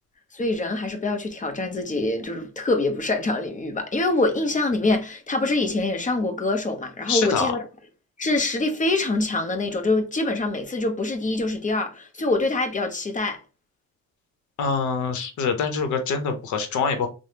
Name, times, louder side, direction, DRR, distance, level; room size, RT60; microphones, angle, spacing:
voice 1, 0.3-7.6 8.2-13.4, left 2 dB, 25° left, 0.7 m, -25 dB
voice 2, 7.1-7.5 14.6-17.1, left 5 dB, 75° left, 0.8 m, -25 dB
3.3 x 2.1 x 2.8 m
cardioid pair, 90°, 30 cm